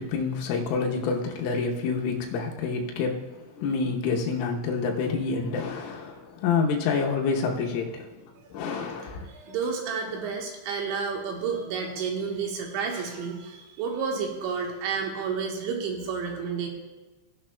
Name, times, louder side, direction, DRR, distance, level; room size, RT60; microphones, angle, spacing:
voice 1, 0.0-3.3 3.6-8.1 8.5-9.3, left 4 dB, 85° left, -1 dB, 3.5 m, -28 dB
voice 2, 8.4-8.8 9.2-16.7, right 5 dB, 75° right, 1 dB, 3.2 m, -31 dB
17.0 x 10.5 x 2.2 m, 1.2 s
omnidirectional pair, 5.8 m